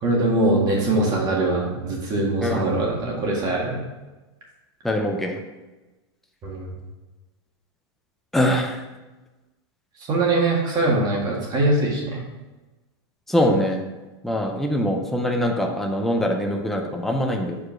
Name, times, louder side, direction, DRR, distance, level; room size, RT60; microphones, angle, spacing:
voice 1, 0.0-3.8 6.4-6.7 10.1-12.2, right 2 dB, 25° right, -2 dB, 1.8 m, -22 dB
voice 2, 2.4-2.7 4.8-5.4 8.3-8.8 13.3-13.8 14.2-17.6, equal, ahead, 2 dB, 0.6 m, -23 dB
4.9 x 4.4 x 5.8 m, 1.1 s
supercardioid pair, 150°, 15 cm